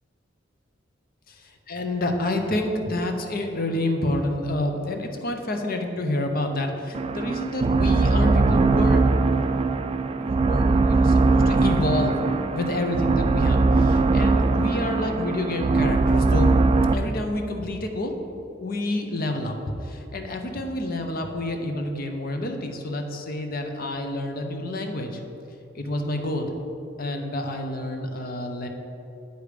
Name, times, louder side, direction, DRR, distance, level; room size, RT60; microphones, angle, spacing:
voice 1, 1.3-9.0 10.2-12.2 12.5-16.5 16.9-18.1 18.6-19.5 19.8-25.2 25.7-26.5 27.0-28.7, left 1 dB, 50° left, 4 dB, 0.8 m, -28 dB
sound 1, 6.9-16.9, right 3 dB, 30° right, 0.3 m, -21 dB
9.3 x 5.0 x 5.1 m, 2.8 s
head